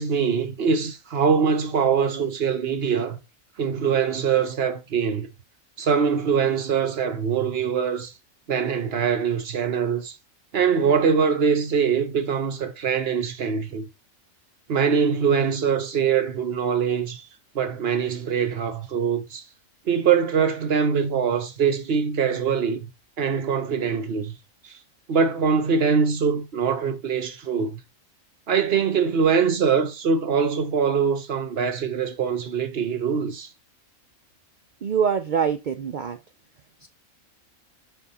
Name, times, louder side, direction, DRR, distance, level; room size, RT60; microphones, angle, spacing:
voice 1, 0.0-3.2 3.6-5.3 5.8-8.1 8.5-10.1 10.5-13.9 14.7-17.3 17.5-19.4 19.8-22.9 23.2-24.4 24.6-24.7 25.1-27.8 28.5-33.5, right 6 dB, 50° right, 1.1 m, -23 dB
voice 2, 34.8-36.2 36.8-36.9, right 7 dB, 70° right, 0.4 m, -24 dB
5.3 x 4.4 x 4.2 m
omnidirectional pair, 1.4 m